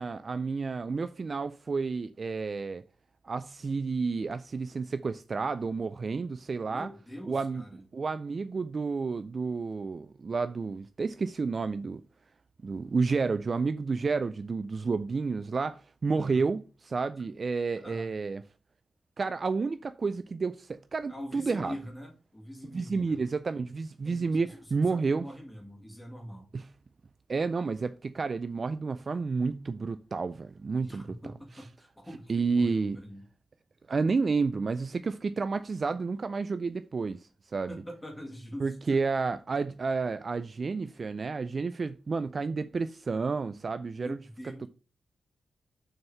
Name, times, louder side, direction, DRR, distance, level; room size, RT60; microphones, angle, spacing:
voice 1, 0.0-2.8 3.2-6.9 7.3-7.6 7.9-12.0 12.6-18.4 19.2-21.7 22.7-25.3 26.5-26.7 27.3-31.2 32.3-33.0 33.9-37.8 38.6-44.2 44.6-44.7, right 4 dB, 35° right, 0.3 m, -30 dB
voice 2, 6.7-7.9 16.2-16.5 17.8-18.1 21.1-23.3 24.0-26.5 30.8-33.2 37.7-39.0 44.0-44.7, equal, 10° left, 2.2 m, -44 dB
6.4 x 4.6 x 5.5 m
wide cardioid pair, 175°, 0 cm